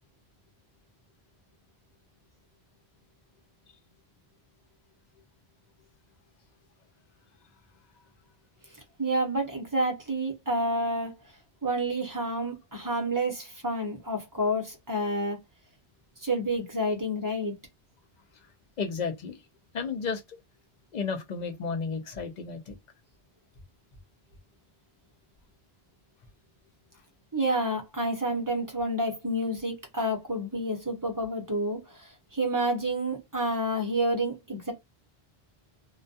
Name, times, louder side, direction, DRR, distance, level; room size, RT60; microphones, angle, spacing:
voice 1, 9.0-11.2 11.6-15.4 16.2-17.6 27.3-34.7, right 1 dB, 20° right, 0.6 m, -29 dB
voice 2, 18.8-19.4 19.7-20.4 20.9-22.8, left 5 dB, 50° left, 0.6 m, -33 dB
2.2 x 2.2 x 2.6 m
omnidirectional pair, 1.0 m